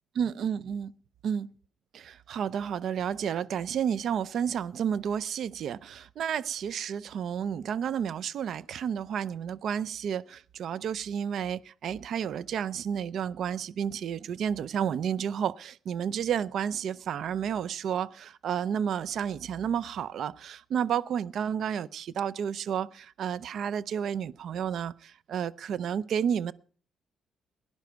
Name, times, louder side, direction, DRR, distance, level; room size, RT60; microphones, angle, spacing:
voice 1, 0.2-0.9 1.2-1.5 1.9-26.5, right 8 dB, 65° right, 0.5 m, -31 dB
17.5 x 10.5 x 4.6 m
cardioid pair, 90°, 0 cm